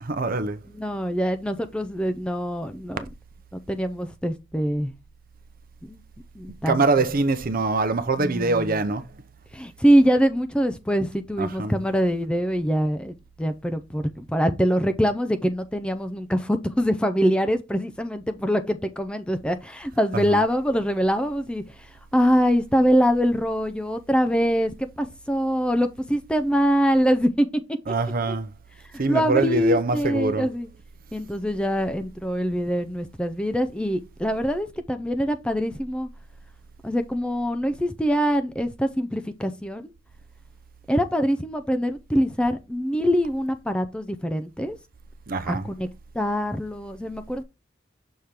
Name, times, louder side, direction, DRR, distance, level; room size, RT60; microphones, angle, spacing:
voice 1, 0.0-0.6 6.7-9.1 11.4-11.7 20.1-20.4 27.9-28.5 29.0-30.5 45.3-45.6, right 3 dB, 50° right, 0.7 m, -24 dB
voice 2, 0.7-3.1 3.5-4.9 5.8-6.0 6.4-6.8 8.2-8.8 9.5-27.5 28.3-28.4 28.9-30.7 31.1-36.1 36.8-39.9 40.9-44.8 45.5-45.9 46.1-47.4, equal, 5° left, 0.4 m, -24 dB
6.5 x 3.5 x 4.3 m
head